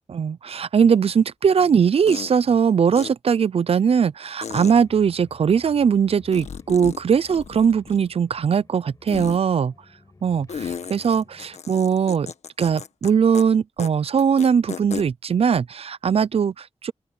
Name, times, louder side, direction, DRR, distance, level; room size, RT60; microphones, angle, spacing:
voice 1, 0.1-9.7 10.2-12.3 12.6-16.9, right 7 dB, 60° right, 0.5 m, -20 dB
sound 1, 1.2-1.3 2.1-2.3 3.0-3.1 4.4-4.7 6.3-7.0 7.3-8.2 9.1-9.4 10.5-13.1 13.3-13.4 13.8-13.9 14.2-15.0, left 6 dB, 80° left, 1.5 m, -34 dB
sound 2, 4.5-11.6, left 3 dB, 30° left, 5.0 m, -52 dB
open air
wide cardioid pair, 115°, 11 cm